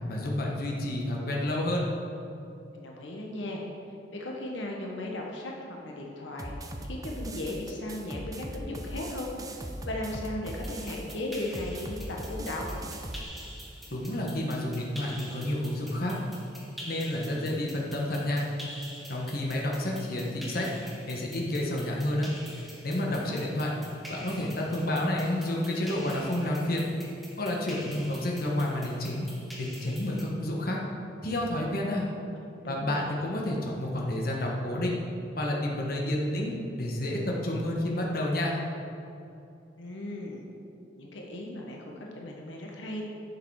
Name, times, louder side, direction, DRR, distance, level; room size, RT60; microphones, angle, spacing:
voice 1, 0.1-1.9 13.9-16.1 16.8-18.4 19.1-20.7 21.1-22.3 22.8-23.7 24.1-26.8 27.4-29.3 29.6-30.8 31.2-32.1 32.7-34.9 35.4-38.6, left 1 dB, 50° left, -2 dB, 1.4 m, -30 dB
voice 2, 2.7-3.7 4.1-12.7 23.0-23.4 32.6-33.2 39.8-40.4 41.0-43.0, left 1 dB, 80° left, -1 dB, 1.3 m, -37 dB
sound 1, 6.4-13.2, right 1 dB, 20° right, 0.7 m, -39 dB
sound 2, 10.4-30.2, equal, ahead, 1.7 m, -47 dB
11.0 x 6.8 x 4.8 m, 2.7 s
head